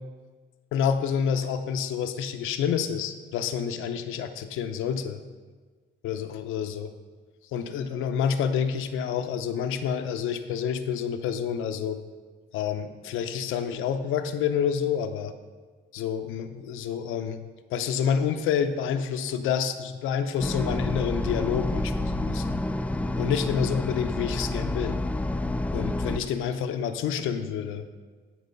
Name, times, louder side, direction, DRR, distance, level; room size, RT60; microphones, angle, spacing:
voice 1, 0.7-5.2 6.0-6.9 7.5-12.0 12.5-15.3 15.9-17.4 17.7-22.6 23.2-25.0 25.7-27.8, left 7 dB, 90° left, 8 dB, 0.7 m, -28 dB
sound 1, 20.4-26.2, left 1 dB, 5° left, 0.3 m, -29 dB
10.0 x 4.7 x 5.3 m, 1.4 s
cardioid pair, 90°, 20 cm